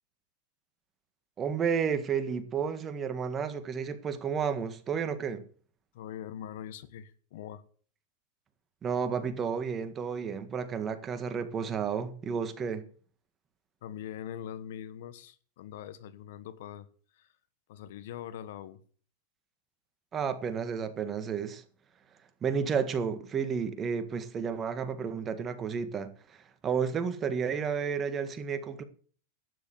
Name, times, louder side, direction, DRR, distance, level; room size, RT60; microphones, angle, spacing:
voice 1, 1.4-5.4 8.8-12.8 20.1-21.6 22.4-28.8, right 6 dB, 25° right, 1.7 m, -32 dB
voice 2, 5.9-7.6 13.8-16.9 17.1-17.3 17.7-18.8, left 10 dB, 70° left, 1.3 m, -42 dB
12.5 x 10.0 x 6.9 m
hypercardioid pair, 120°, 0 cm